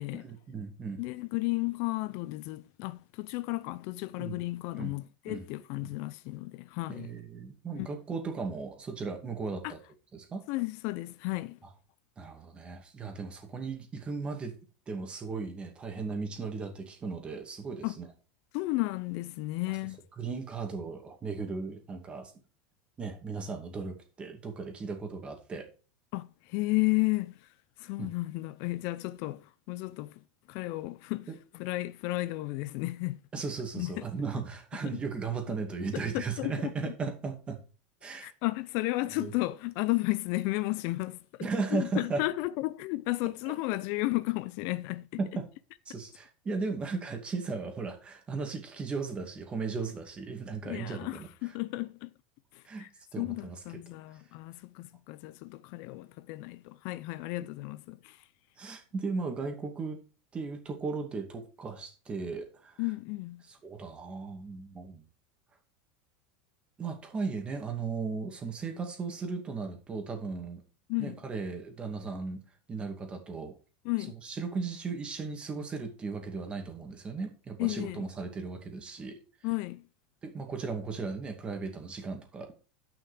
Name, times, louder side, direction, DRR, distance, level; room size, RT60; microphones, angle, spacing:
voice 1, 0.1-1.0 4.2-4.4 4.7-5.0 5.3-5.4 5.8-5.9 6.9-9.8 10.1-10.5 11.6-11.7 12.2-14.5 14.9-18.1 20.2-22.3 23.0-25.7 28.0-28.1 31.3-31.4 33.3-37.6 38.0-38.3 39.2-39.3 41.4-42.2 45.2-45.5 45.9-51.3 52.6-53.6 58.6-60.0 60.3-62.8 63.5-65.1 66.8-70.6 71.0-72.4 72.7-73.6 74.1-79.2 80.2-82.5, right 4 dB, 20° right, 2.3 m, -36 dB
voice 2, 1.0-7.1 7.8-7.9 9.6-9.7 10.5-11.6 17.8-17.9 18.5-20.0 26.1-27.5 27.8-30.2 30.5-31.3 31.5-33.2 33.7-34.0 34.9-35.0 36.1-36.9 38.2-45.1 50.6-52.1 52.5-52.9 53.2-58.2 62.8-63.4 70.9-71.2 73.8-74.1 77.6-78.1 79.4-79.8, left 21 dB, 55° left, 0.5 m, -33 dB
9.8 x 5.9 x 5.0 m
supercardioid pair, 130°, 5 cm